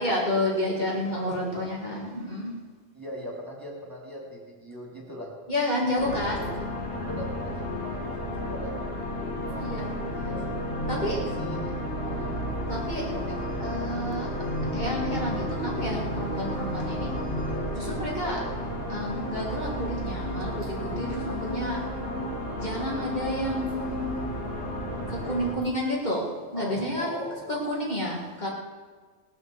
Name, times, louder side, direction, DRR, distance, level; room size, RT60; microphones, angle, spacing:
voice 1, 0.0-2.5 5.5-6.4 9.6-9.9 10.9-11.2 12.7-13.1 13.6-14.3 14.7-17.1 17.7-18.4 18.9-21.8 22.6-24.3 25.1-28.5, left 1 dB, 40° left, -3 dB, 2.5 m, -30 dB
voice 2, 1.2-1.6 2.9-5.3 6.0-6.2 7.0-8.8 9.5-9.8 10.1-11.7 12.0-12.3 13.1-13.4 25.2-25.6 26.5-27.5, equal, 20° right, -2 dB, 2.9 m, -40 dB
sound 1, 6.0-25.5, equal, 55° left, 1.9 m, -32 dB
18.0 x 7.9 x 7.0 m, 1.5 s
omnidirectional pair, 1.2 m